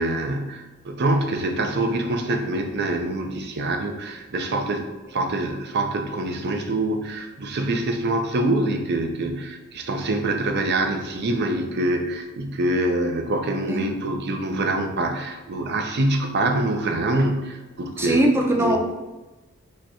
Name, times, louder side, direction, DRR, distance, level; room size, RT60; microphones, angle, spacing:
voice 1, 0.0-18.2 18.6-18.8, right 2 dB, 55° right, 5 dB, 0.5 m, -25 dB
voice 2, 18.0-18.8, right 1 dB, 10° right, 0 dB, 0.6 m, -21 dB
5.3 x 2.3 x 4.2 m, 1.1 s
head